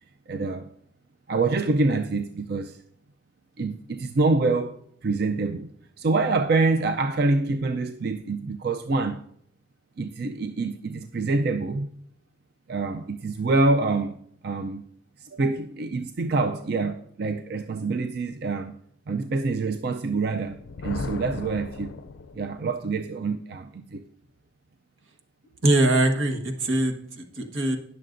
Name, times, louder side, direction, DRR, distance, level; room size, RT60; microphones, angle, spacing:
voice 1, 0.3-0.7 1.3-2.8 3.6-9.2 10.0-11.9 12.7-14.8 15.2-18.8 19.1-22.0 22.3-24.0, right 3 dB, 55° right, 0.4 m, -26 dB
Thunder, 20.5-22.8, left 4 dB, 70° left, 0.4 m, -36 dB
voice 2, 25.6-27.8, right 1 dB, 85° right, 1.4 m, -22 dB
20.0 x 6.7 x 2.6 m
head